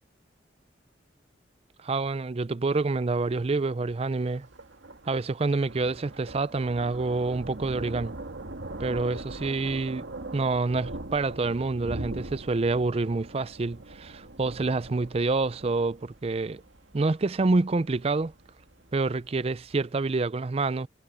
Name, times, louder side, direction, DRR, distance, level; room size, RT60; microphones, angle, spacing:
voice 1, 1.8-4.5 5.1-8.1 8.8-10.1 10.3-16.6 16.9-18.3 18.9-20.9, right 3 dB, 30° right, 0.4 m, -27 dB
Thunder, 2.9-19.9, right 2 dB, 80° right, 2.0 m, -42 dB
head